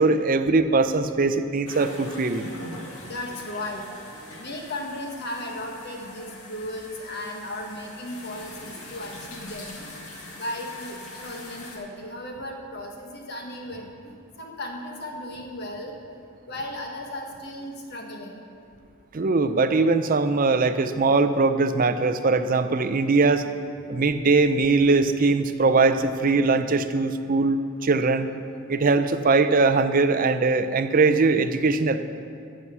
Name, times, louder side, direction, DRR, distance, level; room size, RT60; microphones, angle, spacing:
voice 1, 0.0-2.5 19.1-23.5 23.9-28.3 28.7-32.0, right 3 dB, 40° right, 10 dB, 0.5 m, -21 dB
sound 1, 1.7-11.8, left 1 dB, 80° left, 1.9 m, -42 dB
voice 2, 3.0-3.8 4.4-9.9 10.3-16.0 16.5-18.3, left 1 dB, 50° left, 1 dB, 1.4 m, -36 dB
11.0 x 6.2 x 7.9 m, 2.4 s
head